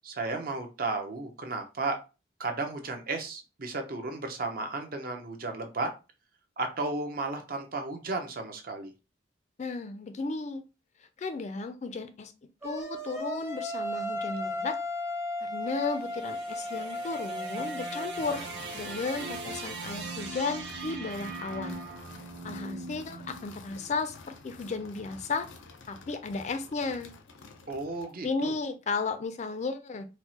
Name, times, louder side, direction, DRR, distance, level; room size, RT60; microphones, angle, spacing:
voice 1, 0.0-2.0 2.4-5.9 6.6-8.9 27.7-28.5, right 3 dB, 50° right, 0.7 m, -34 dB
voice 2, 9.6-10.6 11.2-12.3 12.6-14.8 15.4-18.4 18.7-21.8 22.4-24.2 24.4-25.5 25.9-27.1 28.2-30.1, left 4 dB, 40° left, 0.4 m, -34 dB
sound 1, 12.6-18.4, left 1 dB, 15° right, 0.6 m, -35 dB
sound 2, 15.7-24.0, right 3 dB, 75° right, 1.2 m, -41 dB
sound 3, 18.2-28.2, left 4 dB, 90° left, 0.6 m, -50 dB
4.4 x 2.0 x 2.8 m
head